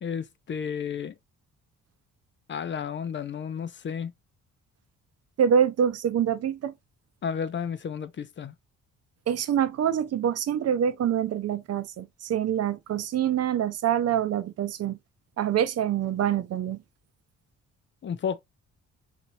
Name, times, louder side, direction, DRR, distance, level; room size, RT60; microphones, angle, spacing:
voice 1, 0.0-1.1 2.5-4.1 7.2-8.5 18.0-18.4, left 7 dB, 40° left, 0.5 m, -32 dB
voice 2, 5.4-6.7 9.3-15.0 15.4-16.8, right 9 dB, 55° right, 0.6 m, -25 dB
4.3 x 2.7 x 2.6 m
cardioid pair, 90°, 30 cm